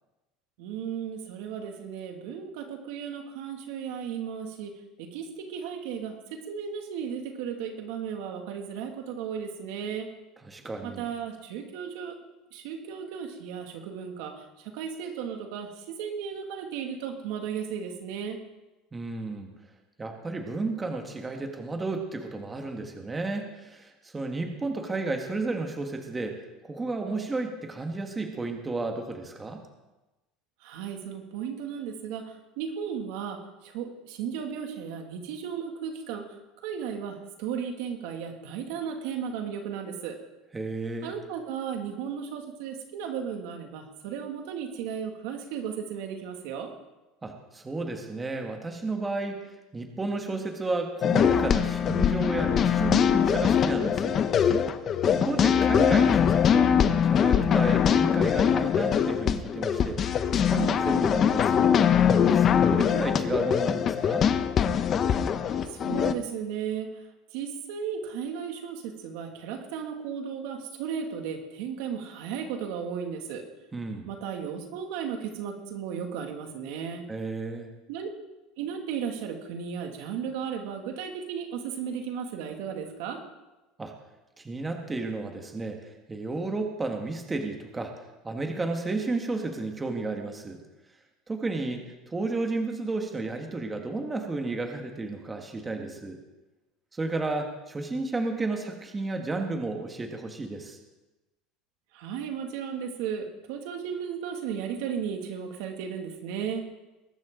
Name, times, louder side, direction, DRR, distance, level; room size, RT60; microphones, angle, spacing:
voice 1, 0.6-10.1 10.8-12.2 12.5-18.4 30.6-36.3 36.6-40.2 41.0-46.7 65.7-66.9 67.3-73.5 74.1-77.1 77.9-78.1 78.6-83.2 101.9-106.7, right 7 dB, 75° right, 4 dB, 2.2 m, -35 dB
voice 2, 10.4-11.1 18.9-19.5 20.0-26.4 26.6-29.6 40.5-41.1 47.2-54.2 55.0-60.0 60.3-61.7 62.2-64.3 73.7-74.1 77.1-77.7 83.8-83.9 84.4-87.9 88.2-90.6 91.3-96.2 96.9-100.8, right 3 dB, 15° right, 4 dB, 1.6 m, -32 dB
sound 1, 51.0-66.1, left 8 dB, 35° left, 0.8 m, -22 dB
21.0 x 12.0 x 3.8 m, 1.0 s
cardioid pair, 140°, 0 cm